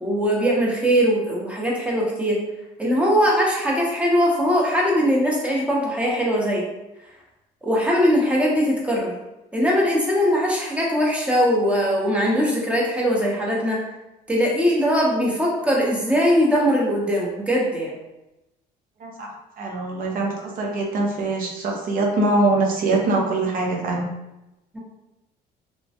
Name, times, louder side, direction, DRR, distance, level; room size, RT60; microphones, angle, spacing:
voice 1, 0.0-2.4 2.8-6.6 7.6-9.1 9.5-13.8 14.3-17.9 24.7-24.8, equal, 5° right, -3 dB, 0.8 m, -21 dB
voice 2, 19.0-24.1, right 2 dB, 55° right, 0 dB, 0.7 m, -23 dB
3.1 x 2.2 x 2.8 m, 0.96 s
cardioid pair, 110°, 17 cm